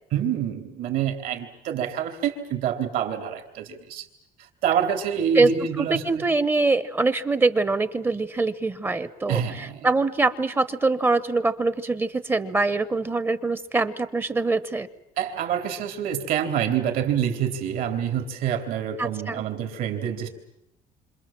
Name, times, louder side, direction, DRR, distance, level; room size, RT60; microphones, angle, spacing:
voice 1, 0.1-4.1 4.6-6.2 9.3-9.9 15.2-20.3, right 8 dB, 65° right, 5 dB, 3.9 m, -27 dB
voice 2, 5.8-14.9 19.0-19.5, right 3 dB, 15° right, 14 dB, 1.0 m, -24 dB
28.0 x 26.5 x 7.5 m, 0.80 s
cardioid pair, 155°, 16 cm